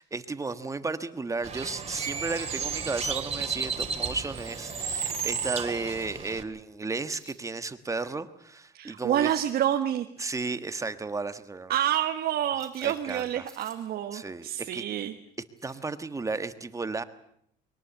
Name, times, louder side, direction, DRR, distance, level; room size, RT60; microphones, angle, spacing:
voice 1, 0.0-9.4 10.2-11.7 12.8-13.5 14.1-14.8 15.6-17.0, right 3 dB, 20° right, 11 dB, 1.4 m, -34 dB
Bird, 1.4-6.4, right 6 dB, 35° right, 2.7 m, -33 dB
sound 1, 7.1-7.4 9.1-9.9 11.9-12.0 12.6-13.9 15.6-16.0 16.4-16.5, equal, 5° left, 5.6 m, -53 dB
voice 2, 8.7-10.1 11.7-15.1, right 11 dB, 65° right, 5 dB, 1.4 m, -28 dB
22.5 x 18.5 x 8.4 m, 0.69 s
cardioid pair, 110°, 17 cm